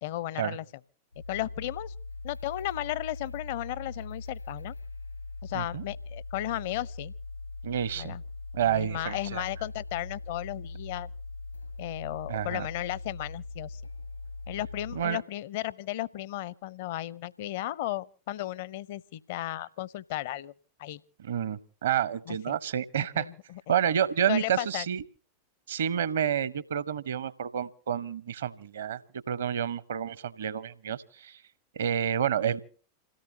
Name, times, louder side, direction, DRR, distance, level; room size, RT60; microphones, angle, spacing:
voice 1, 0.0-0.6 1.3-1.9 2.2-4.7 5.4-7.1 8.0-8.2 8.6-11.1 11.8-13.8 14.5-20.5 20.8-21.0 22.3-22.6 23.0-23.6 24.3-24.9, left 15 dB, 50° left, 0.7 m, -35 dB
sound 1, 1.1-15.1, left 3 dB, 85° left, 4.5 m, -41 dB
voice 2, 7.6-8.2 8.5-9.4 12.3-12.7 14.9-15.2 21.2-23.3 23.7-25.0 25.7-29.0 29.3-31.4 31.8-32.6, right 9 dB, 65° right, 0.8 m, -29 dB
27.5 x 17.0 x 2.9 m
figure-of-eight pair, 90°, 0 cm